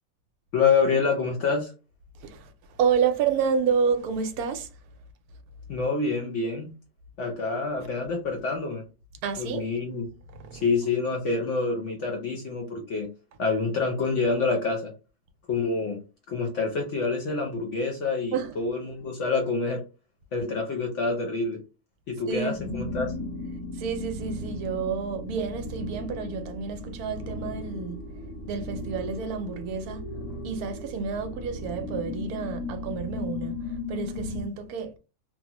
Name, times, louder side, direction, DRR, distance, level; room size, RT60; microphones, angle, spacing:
voice 1, 0.5-1.7 5.7-6.7 7.2-8.8 9.4-10.1 10.5-13.1 13.4-14.9 15.5-16.0 16.3-19.8 20.3-21.6 22.1-23.1, left 4 dB, 60° left, 0.9 m, -27 dB
voice 2, 2.1-4.7 7.8-7.9 9.2-9.6 10.4-10.6 18.3-18.6 22.3-22.5 23.7-30.1 30.4-34.9, right 6 dB, 75° right, 1.0 m, -29 dB
sound 1, 22.5-34.5, left 2 dB, 80° left, 1.3 m, -36 dB
3.0 x 2.0 x 2.8 m
omnidirectional pair, 1.7 m